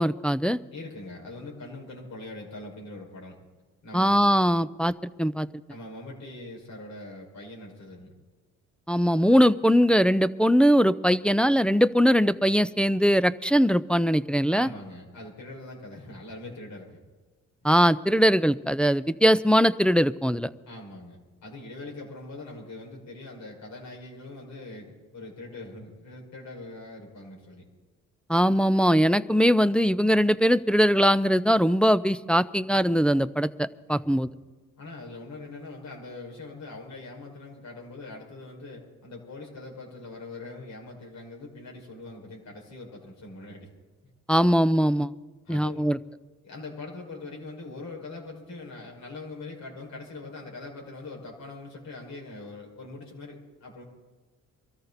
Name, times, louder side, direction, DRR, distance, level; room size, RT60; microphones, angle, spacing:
voice 1, 0.0-0.6 3.9-4.9 5.2-5.5 8.9-14.7 17.6-20.5 28.3-34.3 44.3-45.1 45.5-46.0, equal, 5° left, 13 dB, 0.4 m, -21 dB
voice 2, 0.7-3.4 3.8-4.3 5.7-8.1 14.5-17.0 20.7-27.7 33.9-34.2 34.8-43.7 44.4-44.5 45.5-45.9 46.4-53.8, left 2 dB, 65° left, -1 dB, 5.2 m, -42 dB
23.0 x 13.5 x 4.1 m, 1.3 s
cardioid pair, 90°, 30 cm